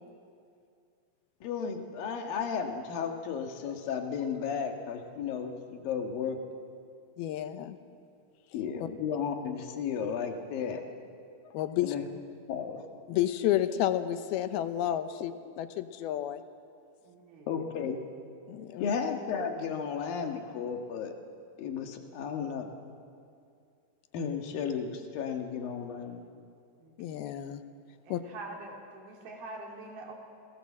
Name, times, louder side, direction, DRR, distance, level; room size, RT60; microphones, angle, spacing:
voice 1, 1.4-6.4 8.5-10.8 11.4-11.5 11.8-12.1 12.5-12.9 17.5-18.0 18.8-21.1 21.6-22.7 24.1-26.2, left 6 dB, 70° left, 4 dB, 3.4 m, -34 dB
voice 2, 7.2-7.8 8.8-8.9 11.5-11.9 13.1-15.3 15.6-16.4 18.5-18.9 27.0-27.6 28.1-28.2, left 12 dB, 90° left, 10 dB, 2.9 m, -30 dB
voice 3, 17.0-17.5 26.8-26.9 28.0-30.2, right 2 dB, 75° right, 0 dB, 4.8 m, -44 dB
27.0 x 18.5 x 7.5 m, 2.4 s
omnidirectional pair, 4.3 m